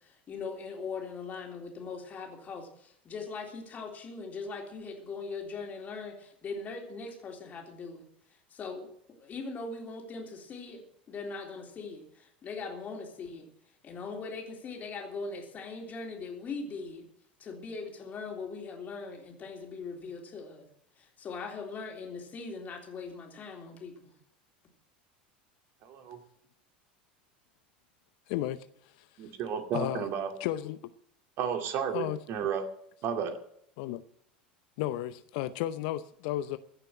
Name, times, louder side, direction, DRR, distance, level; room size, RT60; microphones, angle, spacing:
voice 1, 0.0-8.1 8.5-8.9 9.2-13.5 13.8-17.1 17.4-20.7 21.0-24.1, left 4 dB, 35° left, 3.6 m, -40 dB
voice 2, 25.8-26.2 29.2-30.3 31.4-32.7 33.0-33.4, right 7 dB, 50° right, 2.4 m, -32 dB
voice 3, 28.3-28.7 29.0-29.1 29.7-30.1 30.4-30.9 31.9-32.5 33.8-34.0 34.8-36.6, left 13 dB, 60° left, 0.7 m, -33 dB
16.0 x 6.8 x 9.0 m
figure-of-eight pair, 80°, 5 cm